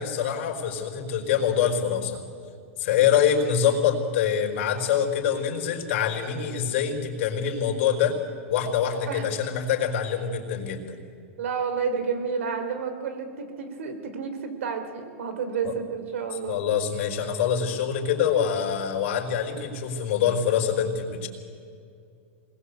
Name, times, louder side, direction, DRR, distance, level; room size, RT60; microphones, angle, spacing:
voice 1, 0.0-2.2 2.8-8.1 8.5-10.8 15.6-15.7 16.5-21.3, left 8 dB, 60° left, 2 dB, 4.6 m, -25 dB
voice 2, 11.4-16.6, right 6 dB, 75° right, 8 dB, 3.7 m, -30 dB
26.0 x 20.5 x 8.3 m, 2.3 s
hypercardioid pair, 130°, 7 cm